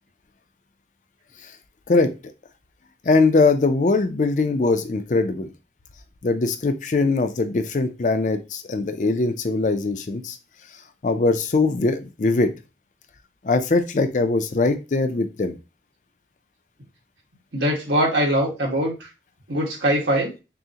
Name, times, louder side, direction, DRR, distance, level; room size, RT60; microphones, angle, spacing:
voice 1, 3.0-5.5 6.2-10.4 11.0-12.5 13.4-15.6, left 3 dB, 45° left, 9 dB, 0.4 m, -21 dB
voice 2, 17.5-18.9 19.5-20.3, equal, 85° right, -2 dB, 1.6 m, -21 dB
6.1 x 2.1 x 2.8 m, 0.29 s
head